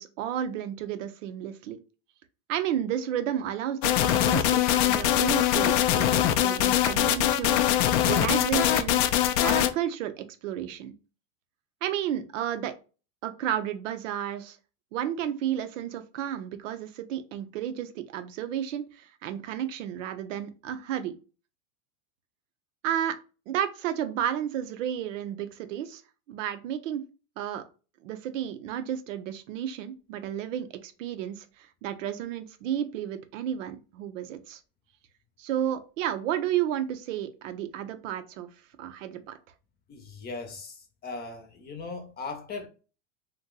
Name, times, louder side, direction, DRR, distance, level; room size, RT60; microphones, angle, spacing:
voice 1, 0.0-1.8 2.5-9.0 9.4-10.9 11.8-12.7 13.2-14.6 14.9-21.1 22.8-23.2 23.5-26.0 26.3-27.0 27.4-27.6 28.0-34.6 35.4-38.5 38.8-39.4, right 10 dB, 75° right, 0.6 m, -32 dB
sound 1, 3.8-9.7, left 12 dB, 65° left, 0.5 m, -23 dB
voice 2, 39.9-42.7, left 3 dB, 25° left, 0.8 m, -38 dB
2.6 x 2.2 x 3.8 m
hypercardioid pair, 115°, 38 cm